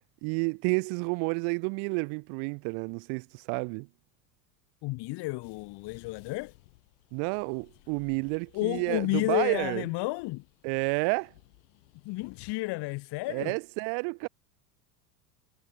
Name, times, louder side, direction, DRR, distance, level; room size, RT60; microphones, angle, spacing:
voice 1, 0.2-3.9 7.1-9.8 10.6-11.3 13.3-14.3, right 40 dB or more, 50° right, 0.6 m, -30 dB
voice 2, 4.8-6.5 8.5-10.4 12.0-13.6, left 22 dB, 50° left, 1.5 m, -31 dB
sound 1, 5.4-12.5, left 24 dB, 70° left, 4.3 m, -58 dB
hypercardioid pair, 85°, 50 cm